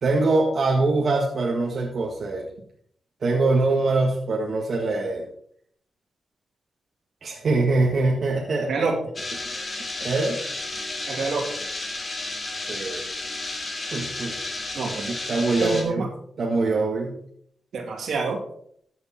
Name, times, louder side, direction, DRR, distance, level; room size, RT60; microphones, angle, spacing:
voice 1, 0.0-2.5 3.2-5.3 7.2-9.0 9.4-10.4 12.7-13.1 13.9-14.4 15.1-16.1 16.4-17.2, right 3 dB, 60° right, -1 dB, 1.7 m, -23 dB
sound 1, 9.2-15.8, left 2 dB, 35° left, 2.5 m, -32 dB
voice 2, 11.1-11.4 14.7-15.1 15.6-16.1 17.7-18.4, right 4 dB, 80° right, 2 dB, 2.6 m, -27 dB
14.0 x 6.8 x 4.4 m, 0.65 s
cardioid pair, 90°, 0 cm